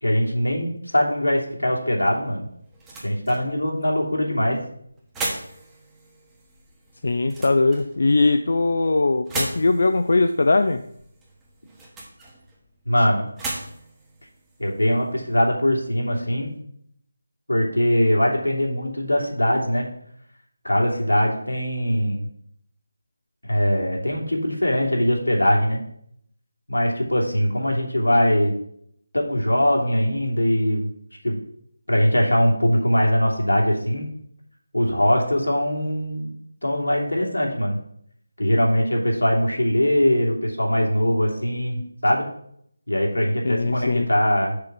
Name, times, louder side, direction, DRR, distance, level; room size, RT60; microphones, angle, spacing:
voice 1, 0.0-2.5 3.0-4.6 12.8-13.3 14.6-16.5 17.5-19.9 20.6-22.3 23.4-25.8 26.7-28.5 29.1-30.9 31.2-31.4 31.9-34.1 34.7-36.3 36.6-37.8 38.4-42.3 42.9-44.6, equal, 90° left, -2 dB, 3.0 m, -21 dB
sound 1, 2.0-15.5, right 2 dB, 10° right, 1.3 m, -38 dB
voice 2, 7.0-10.8 43.4-44.1, left 3 dB, 60° left, 8 dB, 0.5 m, -20 dB
6.8 x 5.1 x 6.0 m, 0.69 s
figure-of-eight pair, 160°, 0 cm